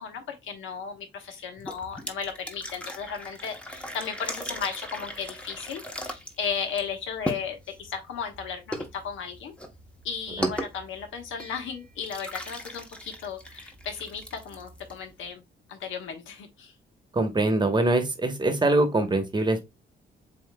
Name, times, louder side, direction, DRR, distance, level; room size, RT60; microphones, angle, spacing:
voice 1, 0.0-9.5 10.0-15.4 15.7-16.7, left 6 dB, 80° left, 1.2 m, -35 dB
sound 1, 1.6-15.3, equal, 5° left, 0.9 m, -38 dB
voice 2, 17.1-19.6, right 2 dB, 20° right, 1.1 m, -23 dB
7.6 x 2.5 x 2.2 m
cardioid pair, 90°, 20 cm